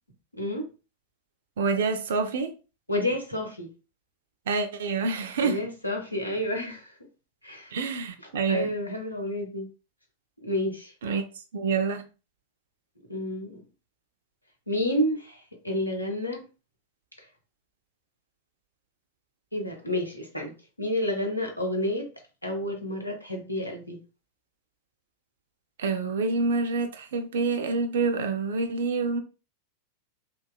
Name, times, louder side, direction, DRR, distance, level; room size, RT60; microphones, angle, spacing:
voice 1, 0.4-0.7 2.9-3.7 5.4-6.9 7.4-7.8 8.2-9.7 10.4-10.9 13.1-13.6 14.7-16.4 19.5-20.5 20.8-22.1 22.4-24.0, left 1 dB, 85° left, 0.7 m, -30 dB
voice 2, 1.6-2.5 4.5-5.6 7.7-8.7 11.0-11.2 11.5-12.0 25.8-29.2, right 4 dB, 60° right, 0.4 m, -27 dB
2.8 x 2.3 x 2.3 m
figure-of-eight pair, 90°, 0 cm